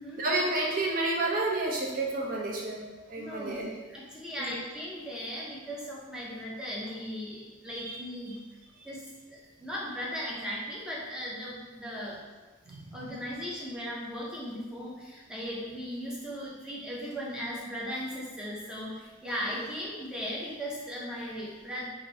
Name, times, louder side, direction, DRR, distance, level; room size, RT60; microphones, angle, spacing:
voice 1, 0.2-3.7 4.4-4.6 7.7-8.0 8.8-8.9 12.7-13.0, right 2 dB, 45° right, -2 dB, 0.6 m, -31 dB
voice 2, 3.2-3.6 3.9-8.4 8.8-12.2 12.9-21.9, equal, 5° right, -5 dB, 0.6 m, -37 dB
2.9 x 2.6 x 4.2 m, 1.3 s
head